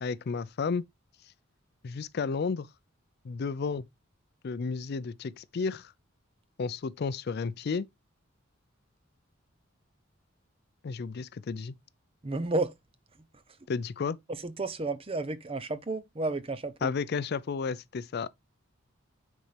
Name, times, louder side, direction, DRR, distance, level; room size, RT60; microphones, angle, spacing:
voice 1, 0.0-0.8 1.8-2.7 3.2-3.9 4.4-5.9 6.6-7.9 10.8-11.7 13.7-14.2 16.8-18.3, left 5 dB, 50° left, 0.4 m, -32 dB
voice 2, 12.2-12.7 14.4-16.9, right 2 dB, 25° right, 0.6 m, -32 dB
9.5 x 4.2 x 3.3 m
head